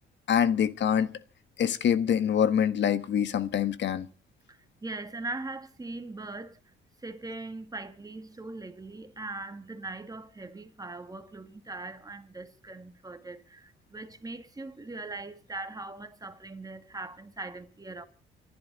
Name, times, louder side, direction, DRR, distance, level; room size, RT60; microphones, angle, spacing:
voice 1, 0.3-1.1 1.6-4.1, left 8 dB, 65° left, 1.3 m, -25 dB
voice 2, 4.5-6.6 7.0-18.1, right 2 dB, 20° right, 2.1 m, -40 dB
28.0 x 11.0 x 4.0 m
cardioid pair, 90°, 20 cm